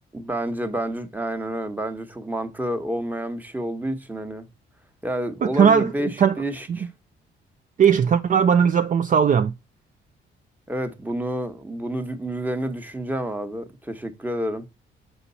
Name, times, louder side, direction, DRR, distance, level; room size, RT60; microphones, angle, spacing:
voice 1, 0.1-4.5 5.0-6.1 6.4-6.9 10.7-14.7, right 1 dB, 10° right, 1.1 m, -29 dB
voice 2, 5.4-6.4 6.7-6.8 7.8-9.5, right 7 dB, 40° right, 0.5 m, -18 dB
6.9 x 4.4 x 4.0 m
cardioid pair, 90°, 20 cm